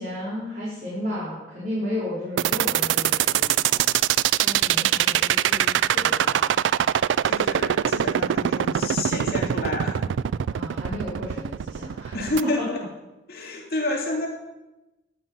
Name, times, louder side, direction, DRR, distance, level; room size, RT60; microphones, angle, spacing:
voice 1, 0.0-3.8 4.4-6.5 10.5-12.2, left 1 dB, 50° right, -8 dB, 4.3 m, -33 dB
sound 1, 2.4-12.4, right 10 dB, 90° right, 0.3 m, -22 dB
voice 2, 7.2-10.1 12.1-12.8 13.3-14.3, left 2 dB, 55° left, -2 dB, 2.9 m, -29 dB
13.5 x 9.9 x 5.6 m, 1.0 s
head